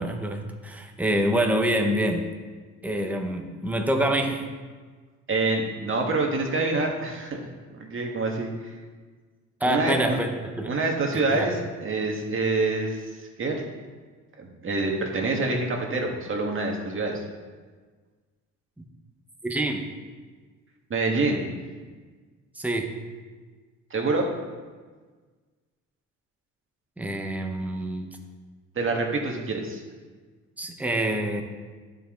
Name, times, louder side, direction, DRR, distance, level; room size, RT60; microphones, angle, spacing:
voice 1, 0.0-2.3 2.8-4.5 9.6-10.3 10.6-10.7 11.3-11.5 19.4-19.8 22.6-22.9 27.0-28.2 30.6-31.4, right 1 dB, 5° right, 3 dB, 1.0 m, -26 dB
voice 2, 5.3-7.4 7.7-8.7 9.6-10.2 10.7-13.6 14.4-17.2 20.9-21.5 23.9-24.3 28.8-29.8, right 3 dB, 45° right, 1 dB, 1.8 m, -26 dB
10.5 x 5.6 x 3.8 m, 1.4 s
cardioid pair, 90°, 30 cm